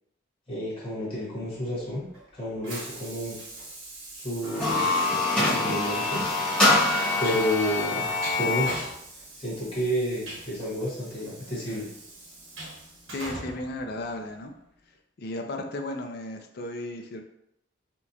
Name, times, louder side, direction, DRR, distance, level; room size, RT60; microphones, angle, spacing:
voice 1, 0.5-2.1 2.3-3.4 4.1-5.0 5.3-6.4 7.2-8.1 8.4-8.7 9.4-11.9, equal, 30° left, -8 dB, 1.4 m, -30 dB
Train, 1.5-14.7, right 2 dB, 85° right, 1.2 m, -43 dB
sound 1, 4.4-8.8, left 2 dB, 5° left, 1.1 m, -25 dB
voice 2, 13.1-14.5 15.2-17.2, left 1 dB, 55° left, 5 dB, 0.4 m, -34 dB
4.4 x 2.2 x 2.7 m, 0.79 s
head